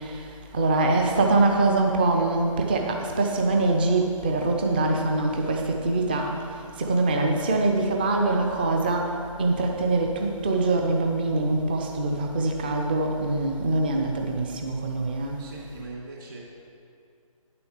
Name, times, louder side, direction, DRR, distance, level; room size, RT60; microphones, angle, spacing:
voice 1, 0.5-6.3 6.8-9.1 9.4-15.3, right 2 dB, 15° right, 2 dB, 0.6 m, -23 dB
voice 2, 15.4-16.4, right 3 dB, 40° right, -4 dB, 2.5 m, -41 dB
9.9 x 6.9 x 6.6 m, 2.3 s
figure-of-eight pair, 150°, 18 cm